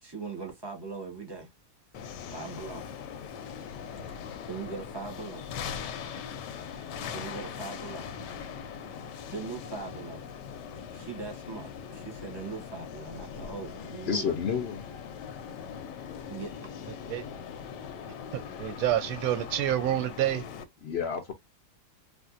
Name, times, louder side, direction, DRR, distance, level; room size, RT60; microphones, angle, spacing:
voice 1, 0.0-1.5 2.3-2.9 4.1-5.5 7.1-8.1 9.3-10.2 10.9-14.4 16.3-16.7, right 4 dB, 20° right, 0.8 m, -40 dB
sound 1, 1.9-20.6, left 7 dB, 90° left, 1.2 m, -41 dB
voice 2, 14.1-14.9 20.8-21.3, left 7 dB, 65° left, 0.6 m, -30 dB
voice 3, 18.3-20.4, right 12 dB, 70° right, 1.0 m, -28 dB
3.5 x 2.5 x 2.4 m
omnidirectional pair, 1.8 m